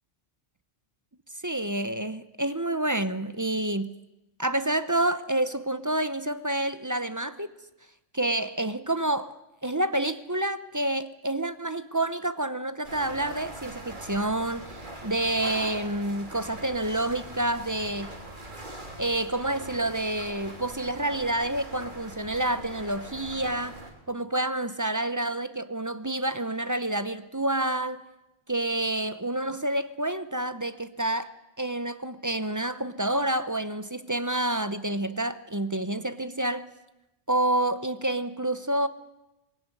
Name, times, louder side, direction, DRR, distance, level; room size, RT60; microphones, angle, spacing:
voice 1, 1.4-3.9 4.4-7.5 8.1-9.3 9.6-18.1 19.0-23.7 24.1-28.0 28.5-31.3 31.6-36.7 37.3-38.9, right 1 dB, 20° right, 0.7 m, -28 dB
sound 1, 12.8-23.9, right 1 dB, 50° right, 3.3 m, -42 dB
20.5 x 17.0 x 9.8 m
omnidirectional pair, 1.1 m